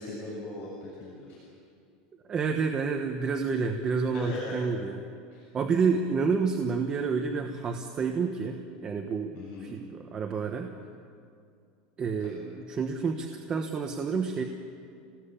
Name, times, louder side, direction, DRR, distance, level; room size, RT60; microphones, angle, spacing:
voice 1, 0.0-1.4 4.1-4.6 5.3-5.4 9.3-9.7 12.2-12.3, left 2 dB, 40° left, -6 dB, 7.3 m, -38 dB
voice 2, 2.3-5.0 5.5-10.7 12.0-14.4, right 5 dB, 20° right, 4 dB, 1.2 m, -29 dB
28.0 x 19.5 x 8.5 m, 2.3 s
supercardioid pair, 170°, 4 cm